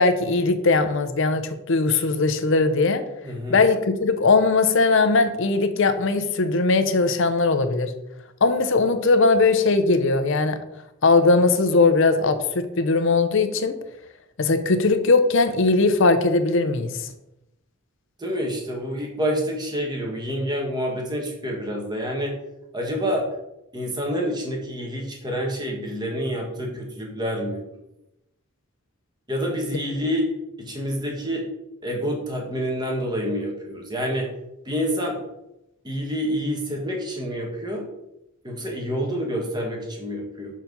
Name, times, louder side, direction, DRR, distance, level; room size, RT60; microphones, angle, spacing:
voice 1, 0.0-3.0 3.5-7.9 8.4-10.6 11.0-13.8 14.4-17.1, left 3 dB, 60° left, 10 dB, 0.7 m, -19 dB
voice 2, 3.2-3.6 18.2-22.4 22.7-23.3 23.7-27.6 29.3-30.3 30.6-31.5 31.8-34.3 34.6-35.2 35.8-37.8 38.4-40.6, equal, 20° right, 0 dB, 1.5 m, -27 dB
6.1 x 4.5 x 5.3 m, 0.88 s
head